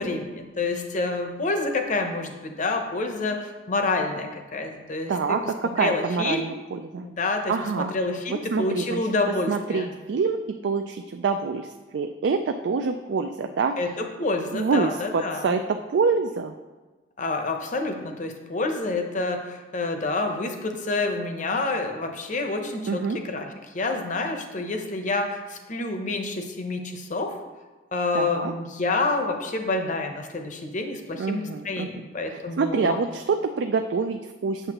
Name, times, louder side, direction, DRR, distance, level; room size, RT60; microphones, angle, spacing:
voice 1, 0.0-5.4 5.8-6.5 7.0-9.9 13.8-15.6 17.2-23.5 23.7-27.4 27.9-33.0, left 3 dB, 45° left, 5 dB, 0.8 m, -28 dB
voice 2, 5.1-7.1 7.5-7.9 8.3-9.0 9.5-13.9 14.5-16.5 22.9-23.2 28.1-28.5 31.2-34.7, right 5 dB, 70° right, 6 dB, 0.3 m, -26 dB
8.0 x 6.6 x 2.9 m, 1.2 s
head